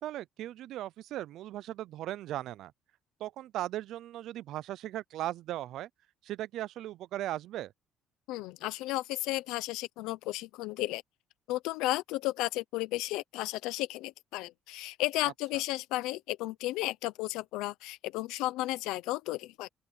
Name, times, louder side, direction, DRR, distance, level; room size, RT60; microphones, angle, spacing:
voice 1, 0.0-2.7 3.2-5.9 6.2-7.7, right 13 dB, 70° right, 0.5 m, -37 dB
voice 2, 8.3-11.0 11.5-19.7, left 17 dB, 85° left, 0.7 m, -33 dB
open air
cardioid pair, 110°, 0 cm